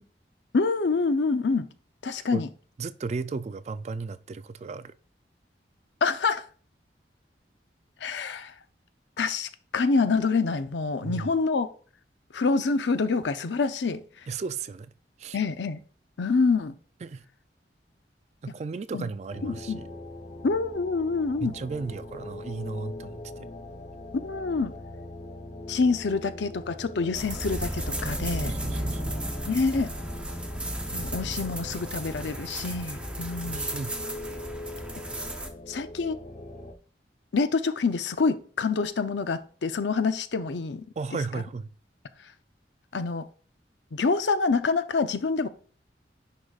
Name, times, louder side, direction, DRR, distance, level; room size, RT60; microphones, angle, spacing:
voice 1, 0.5-1.7 2.0-2.5 6.0-6.4 8.0-8.5 9.2-11.7 12.3-14.0 15.3-15.8 16.2-16.8 18.9-19.1 19.4-19.8 20.4-21.6 24.1-24.7 25.7-28.5 29.5-29.9 30.9-33.6 35.7-36.2 37.3-40.8 42.9-43.3 43.9-45.5, left 4 dB, 80° left, 0.6 m, -26 dB
voice 2, 2.8-4.9 11.0-11.3 14.3-14.9 15.2-15.4 17.0-17.2 18.4-19.9 21.4-23.5 28.4-29.2 33.5-34.0 41.0-41.7, right 4 dB, 40° right, 0.3 m, -35 dB
sound 1, 19.3-36.7, left 2 dB, 40° left, 0.8 m, -42 dB
sound 2, 27.1-35.5, right 1 dB, 5° right, 0.7 m, -34 dB
9.9 x 4.9 x 2.4 m
head